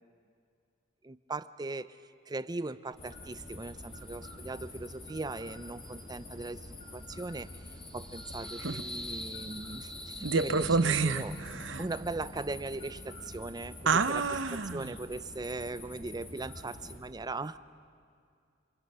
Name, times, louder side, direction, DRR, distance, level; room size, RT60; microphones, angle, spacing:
voice 1, 1.0-2.0 2.3-7.5 7.9-11.3 11.8-17.6, right 2 dB, 20° right, 14 dB, 0.5 m, -39 dB
sound 1, 2.9-17.0, left 2 dB, 30° left, 2.8 m, -47 dB
sound 2, 5.5-11.5, left 1 dB, 5° left, 1.4 m, -46 dB
voice 2, 10.2-11.8 13.9-14.9, right 4 dB, 70° right, 12 dB, 0.9 m, -28 dB
sound 3, 10.5-14.4, equal, 55° left, 7.7 m, -48 dB
27.0 x 27.0 x 5.6 m, 2.3 s
head